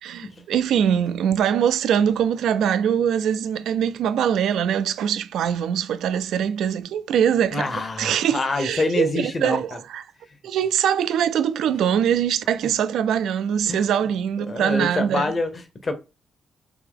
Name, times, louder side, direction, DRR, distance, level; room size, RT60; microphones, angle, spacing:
voice 1, 0.0-7.7 8.0-10.0 10.4-15.3, right 9 dB, 85° right, 0.3 m, -22 dB
voice 2, 7.5-9.8 13.7-13.8 14.5-15.9, left 2 dB, 40° left, 0.9 m, -26 dB
3.6 x 2.8 x 3.6 m
cardioid pair, 80°, 0 cm